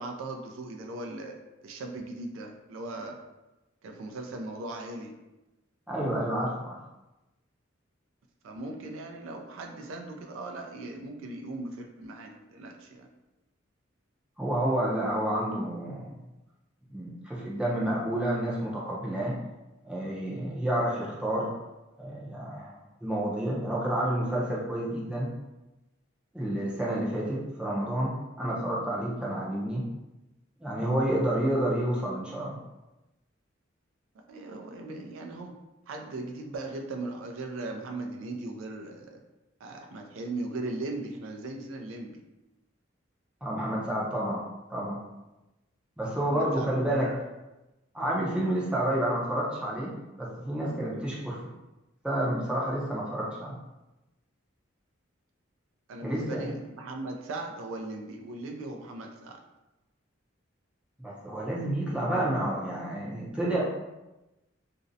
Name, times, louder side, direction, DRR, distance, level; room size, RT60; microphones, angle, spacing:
voice 1, 0.0-1.4 1.6-3.2 3.8-5.2 8.4-13.1 34.3-35.5 35.9-39.2 39.6-42.2 46.2-47.2 55.9-59.4, right 2 dB, 80° right, 3 dB, 0.3 m, -38 dB
voice 2, 5.9-6.8 14.4-16.1 16.9-19.3 19.8-21.5 22.0-22.8 23.0-25.3 26.3-29.8 30.6-32.6 43.4-44.4 44.7-45.0 46.0-47.1 47.9-49.9 50.2-51.5 52.0-53.6 56.0-56.5 61.0-63.6, right 1 dB, 5° right, -5 dB, 0.4 m, -29 dB
2.5 x 2.0 x 2.6 m, 1.0 s
head